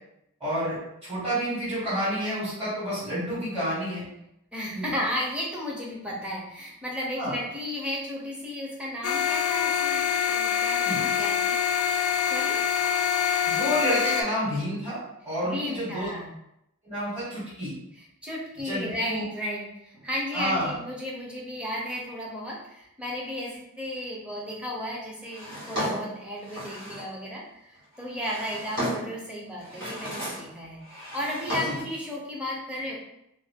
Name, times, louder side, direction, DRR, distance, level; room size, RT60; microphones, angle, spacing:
voice 1, 0.4-4.0 4.7-4.9 7.2-7.3 10.8-11.0 13.5-15.0 15.2-16.1 16.8-17.7 18.6-19.2 20.3-20.7 31.6-31.7, equal, 25° right, -11 dB, 1.4 m, -29 dB
voice 2, 4.5-10.0 10.3-11.6 12.3-12.6 15.4-16.3 18.0-32.9, left 1 dB, 5° right, -4 dB, 0.6 m, -34 dB
sound 1, 9.0-14.2, left 8 dB, 70° left, 0.4 m, -25 dB
Drawer open or close, 25.3-27.1 27.9-29.2 29.6-30.5 30.8-32.0, equal, 60° right, 1.5 m, -34 dB
2.5 x 2.3 x 3.4 m, 0.81 s
head